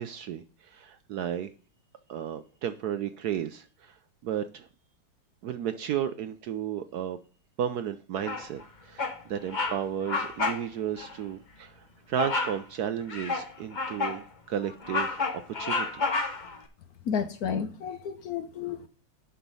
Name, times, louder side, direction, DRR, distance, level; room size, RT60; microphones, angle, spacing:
voice 1, 0.0-1.5 2.1-3.9 4.2-4.7 5.4-7.2 7.6-15.2 15.5-16.0, right 9 dB, 70° right, 0.9 m, -33 dB
Bird vocalization bird call bird song, 8.2-8.6 9.0-9.2 9.5-9.8 10.0-10.6 11.0-11.1 12.2-12.6 13.1-14.2 14.6-16.6, left 3 dB, 35° left, 0.9 m, -30 dB
voice 2, 17.0-18.9, left 7 dB, 65° left, 1.0 m, -31 dB
10.0 x 5.8 x 5.3 m
omnidirectional pair, 2.1 m